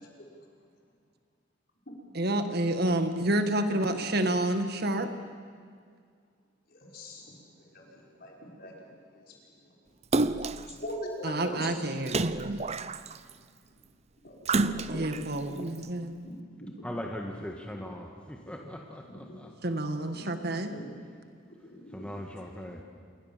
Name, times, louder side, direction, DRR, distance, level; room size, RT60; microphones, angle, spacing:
voice 1, 2.1-5.1 11.2-12.5 14.9-16.1 19.6-20.7, right 1 dB, 55° right, 8 dB, 1.7 m, -29 dB
voice 2, 6.7-7.4 7.7-8.9 10.7-11.7 12.0-12.2 14.2-14.4 14.7-15.0 16.2-16.9 19.0-19.4 20.1-20.2 20.7-20.9 21.5-22.3 22.7-22.8, equal, 55° left, -1 dB, 5.6 m, -42 dB
Splash splatter, 10.1-10.7 12.1-13.3 14.4-15.2 15.8-15.9, right 3 dB, 35° right, 0.7 m, -28 dB
voice 3, 16.8-19.5 21.9-22.8, left 1 dB, 5° left, 1 dB, 1.7 m, -40 dB
27.0 x 22.0 x 7.5 m, 2.1 s
head